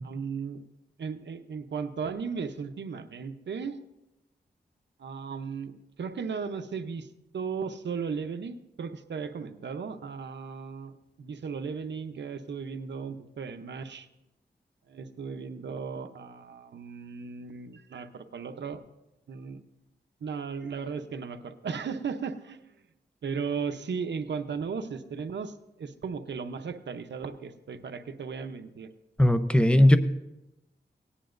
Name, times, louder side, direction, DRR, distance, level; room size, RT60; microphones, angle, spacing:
voice 1, 0.0-0.6 1.0-3.8 5.0-7.1 7.3-14.1 14.9-18.8 19.3-19.6 20.2-22.7 23.2-28.9, right 5 dB, 80° right, 8 dB, 0.7 m, -36 dB
voice 2, 29.2-30.0, left 1 dB, 5° left, 10 dB, 0.7 m, -18 dB
18.0 x 9.9 x 2.6 m, 0.94 s
wide cardioid pair, 70°, 18 cm